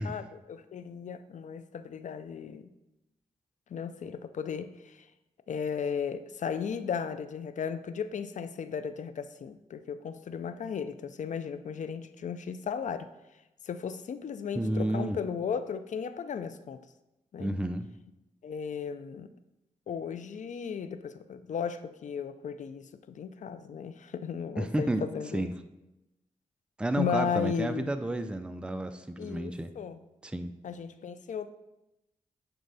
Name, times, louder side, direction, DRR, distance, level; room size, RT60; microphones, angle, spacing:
voice 1, 0.0-2.7 3.7-5.1 5.5-13.1 13.6-16.8 17.3-17.5 18.4-19.3 19.9-25.5 27.0-27.9 29.2-30.0 30.6-31.5, left 7 dB, 65° left, 12 dB, 0.5 m, -35 dB
voice 2, 14.5-15.2 17.4-17.9 24.6-25.1 25.3-25.5 26.8-29.7 30.2-30.5, right 1 dB, 5° right, 8 dB, 0.5 m, -31 dB
9.7 x 4.5 x 4.1 m, 0.95 s
cardioid pair, 65°, 13 cm